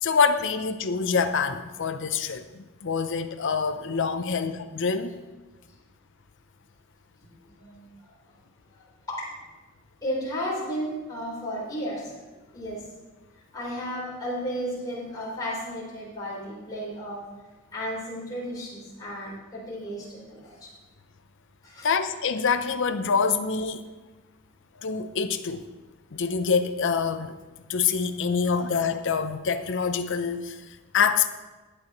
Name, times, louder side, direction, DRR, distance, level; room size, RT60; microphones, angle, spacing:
voice 1, 0.0-5.1 21.8-23.8 24.8-25.6 26.1-27.3 27.7-31.3, left 5 dB, 60° left, 9 dB, 0.6 m, -26 dB
voice 2, 7.6-8.3 8.7-9.3 10.0-12.9 13.5-17.2 17.7-20.7 21.6-21.9, equal, 20° left, -7 dB, 4.0 m, -34 dB
16.0 x 9.9 x 3.1 m, 1.2 s
head